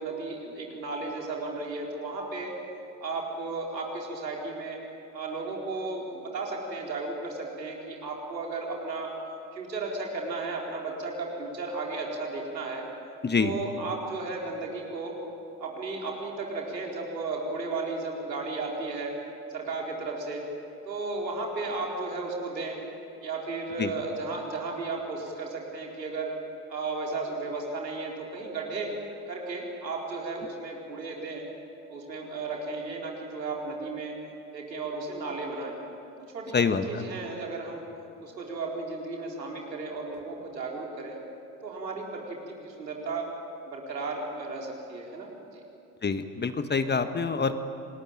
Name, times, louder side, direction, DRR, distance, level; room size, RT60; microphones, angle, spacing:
voice 1, 0.0-2.5 3.0-4.8 5.1-9.1 9.5-12.8 13.4-15.2 15.6-19.1 19.5-20.4 20.8-22.8 23.2-26.3 26.7-28.9 29.3-31.4 31.9-34.1 34.5-35.7 36.3-37.8 38.2-41.2 41.6-43.3 43.7-45.6, right 3 dB, 80° right, -1 dB, 4.5 m, -34 dB
voice 2, 13.2-13.5 23.8-23.9 36.5-37.0 46.0-47.6, left 5 dB, 20° left, 9 dB, 1.5 m, -26 dB
27.5 x 20.0 x 9.1 m, 2.7 s
figure-of-eight pair, 65°, 49 cm